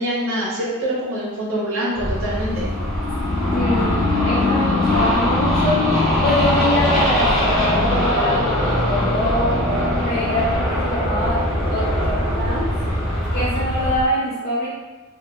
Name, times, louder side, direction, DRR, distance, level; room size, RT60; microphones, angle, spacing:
voice 1, 0.0-2.7, right 1 dB, 65° right, -6 dB, 0.8 m, -24 dB
sound 1, 2.0-14.0, left 1 dB, ahead, 0.8 m, -21 dB
voice 2, 3.5-4.0 4.2-9.7 10.0-12.7 13.3-14.7, left 1 dB, 45° left, -10 dB, 0.6 m, -24 dB
2.2 x 2.2 x 3.0 m, 1.2 s
head